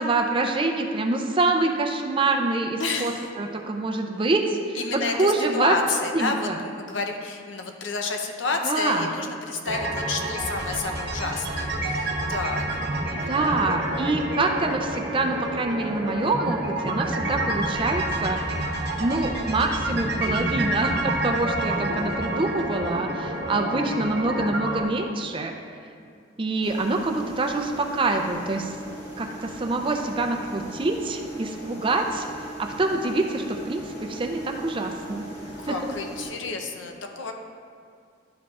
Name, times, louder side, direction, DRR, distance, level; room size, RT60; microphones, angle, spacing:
voice 1, 0.0-5.8 6.1-6.6 8.6-9.1 13.3-18.4 19.0-25.5 26.4-28.7 29.2-35.2 35.7-35.9, right 2 dB, 25° right, 3 dB, 0.4 m, -26 dB
voice 2, 2.8-3.3 4.7-12.8 13.1-13.6 35.6-37.3, left 4 dB, 65° left, 3 dB, 0.6 m, -30 dB
sound 1, 9.6-24.8, right 1 dB, 55° right, 0.8 m, -28 dB
sound 2, 26.6-36.3, right 1 dB, 15° left, 1.6 m, -39 dB
11.0 x 4.9 x 2.4 m, 2.3 s
head